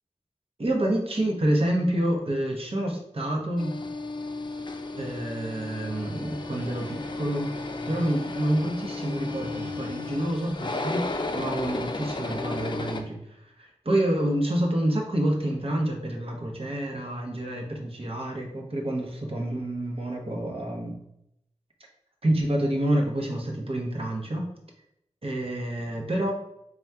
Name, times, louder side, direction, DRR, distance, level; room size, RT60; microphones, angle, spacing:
voice 1, 0.6-3.7 4.9-7.5 7.9-11.0 11.3-13.2 13.6-21.0 22.2-24.4 25.2-26.3, right 1 dB, 50° right, 0 dB, 0.9 m, -28 dB
sound 1, 3.6-13.0, left 2 dB, 40° left, 0.4 m, -34 dB
4.2 x 2.3 x 3.5 m, 0.80 s
wide cardioid pair, 50°, 12 cm